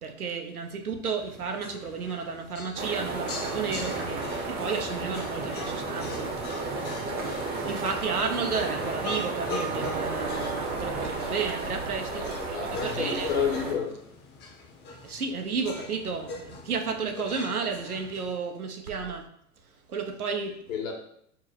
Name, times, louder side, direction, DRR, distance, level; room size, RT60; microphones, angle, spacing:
voice 1, 0.0-6.3 7.6-13.3 15.0-19.2 19.9-20.6, right 5 dB, 90° right, 4 dB, 0.8 m, -32 dB
sound 1, 1.2-18.4, left 3 dB, 25° left, 0.7 m, -43 dB
sound 2, 2.8-13.7, right 3 dB, 20° right, 0.7 m, -33 dB
voice 2, 12.1-14.0 20.7-20.9, left 7 dB, 60° left, 2 dB, 1.2 m, -30 dB
4.5 x 2.1 x 4.5 m, 0.69 s
hypercardioid pair, 100°, 43 cm